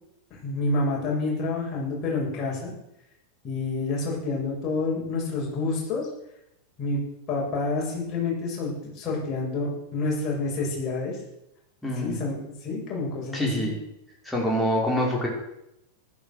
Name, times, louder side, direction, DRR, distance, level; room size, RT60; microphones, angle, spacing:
voice 1, 0.3-2.7 3.4-6.1 6.8-11.2 12.0-13.7, left 3 dB, 30° left, -3 dB, 7.6 m, -28 dB
voice 2, 11.8-12.2 13.3-13.8 14.3-15.3, equal, 5° left, -2 dB, 5.3 m, -25 dB
15.0 x 12.5 x 6.7 m, 0.83 s
figure-of-eight pair, 90°, 0 cm